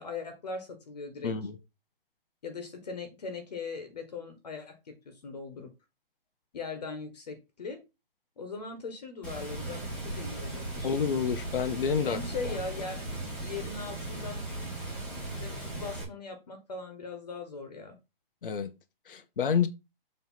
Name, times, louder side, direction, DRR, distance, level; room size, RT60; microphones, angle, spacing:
voice 1, 0.0-1.3 2.4-5.7 6.5-7.8 8.4-11.0 12.0-14.4 15.4-18.0, left 4 dB, 45° left, 1.6 m, -40 dB
voice 2, 1.2-1.6 10.8-12.2 18.4-18.7 19.1-19.7, left 7 dB, 60° left, 1.0 m, -28 dB
Water, 9.2-16.0, right 2 dB, 5° left, 1.5 m, -37 dB
7.5 x 3.4 x 5.8 m
hypercardioid pair, 175°, 30 cm